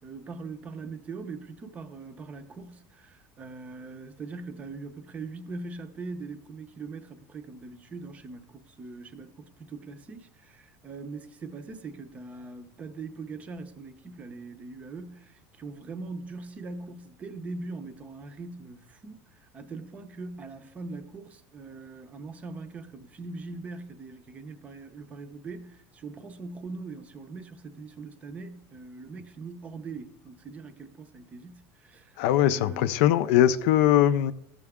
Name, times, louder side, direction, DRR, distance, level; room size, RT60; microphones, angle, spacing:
voice 1, 0.0-32.9, right 3 dB, 20° right, 0.6 m, -41 dB
voice 2, 32.2-34.3, left 11 dB, 70° left, 0.5 m, -21 dB
15.0 x 6.8 x 3.6 m
cardioid pair, 175°, 7 cm